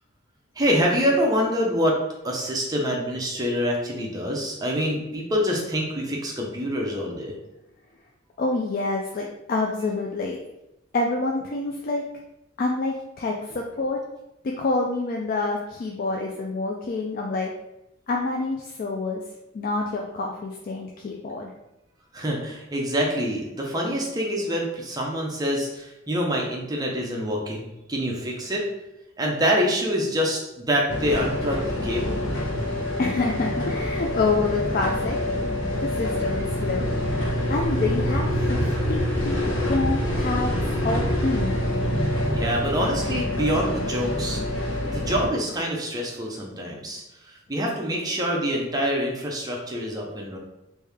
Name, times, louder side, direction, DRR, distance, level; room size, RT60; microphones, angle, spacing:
voice 1, 0.6-2.0 2.2-7.3 22.1-28.6 29.2-32.2 42.3-44.4 44.8-50.4, equal, 20° right, -1 dB, 0.6 m, -26 dB
voice 2, 8.4-10.4 10.9-12.0 12.6-14.0 14.4-17.5 18.1-19.2 19.5-21.5 33.0-35.2 35.8-40.6 40.8-41.6, left 3 dB, 45° left, 0 dB, 0.3 m, -27 dB
sound 1, 30.9-45.3, left 1 dB, 70° left, 1.0 m, -26 dB
3.2 x 2.7 x 3.4 m, 0.90 s
head